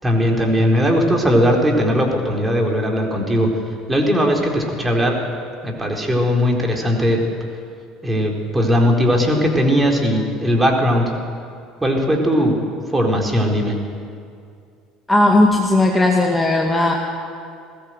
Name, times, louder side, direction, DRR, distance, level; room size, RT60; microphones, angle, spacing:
voice 1, 0.0-3.5 3.9-5.1 5.6-7.2 8.0-11.0 11.8-12.6 12.9-13.8, equal, 15° right, 1 dB, 4.1 m, -18 dB
voice 2, 15.1-16.9, left 2 dB, 10° left, 0 dB, 1.9 m, -16 dB
20.0 x 17.0 x 7.9 m, 2.3 s
figure-of-eight pair, 65°, 0 cm